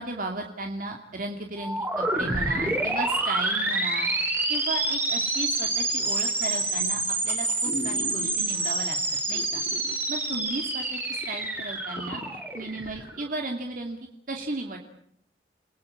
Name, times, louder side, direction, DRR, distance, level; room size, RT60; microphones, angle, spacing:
voice 1, 0.0-4.1 4.5-9.0 9.3-9.6 10.1-12.2 12.5-14.0 14.3-14.8, right 2 dB, 50° right, 3 dB, 2.6 m, -35 dB
sound 1, 1.6-13.3, right 2 dB, 10° right, 4.5 m, -28 dB
sound 2, 6.5-6.8 7.3-7.4 7.6-8.7 9.3-10.0 10.3-10.4 10.9-11.0 11.2-13.1 13.5-13.6, left 1 dB, 45° left, 2.6 m, -39 dB
30.0 x 20.0 x 8.6 m, 0.69 s
head